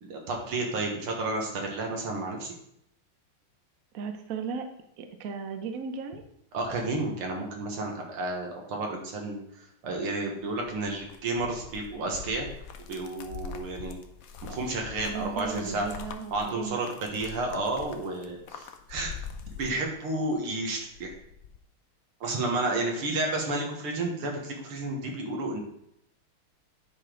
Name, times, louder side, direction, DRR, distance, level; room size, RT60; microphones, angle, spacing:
voice 1, 0.0-2.5 6.5-9.4 9.8-12.5 12.9-14.0 14.4-15.9 16.3-19.1 19.6-21.1 22.2-25.6, right 2 dB, 85° right, 1 dB, 2.3 m, -31 dB
voice 2, 3.9-4.7 5.0-6.2 15.0-17.0, right 5 dB, 60° right, 6 dB, 0.9 m, -36 dB
sound 1, 10.4-20.3 20.7-21.6, left 6 dB, 85° left, 0.7 m, -44 dB
9.6 x 5.1 x 3.8 m, 0.76 s
omnidirectional pair, 2.4 m